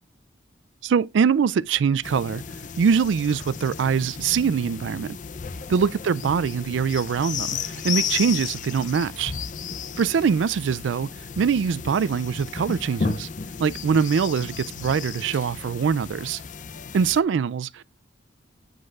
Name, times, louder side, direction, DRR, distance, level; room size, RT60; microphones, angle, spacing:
voice 1, 0.8-2.4 2.8-5.2 5.7-9.3 10.0-11.1 11.4-13.3 13.6-16.4 16.9-17.8, right 6 dB, 80° right, 0.4 m, -23 dB
sound 1, 2.0-17.2, left 6 dB, 45° left, 0.5 m, -34 dB
7.7 x 7.6 x 2.4 m
head